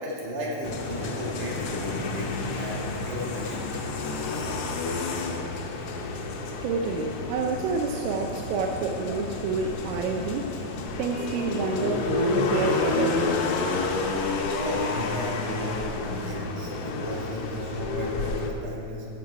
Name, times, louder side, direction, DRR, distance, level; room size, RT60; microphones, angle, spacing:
voice 1, 0.0-3.7 14.6-19.1, equal, 70° right, -3 dB, 3.1 m, -34 dB
sound 1, 0.6-18.5, left 3 dB, 80° left, 1.3 m, -30 dB
voice 2, 6.6-10.5 11.0-13.6, right 4 dB, 85° right, 3 dB, 2.2 m, -28 dB
11.5 x 7.2 x 4.8 m, 2.9 s
omnidirectional pair, 3.8 m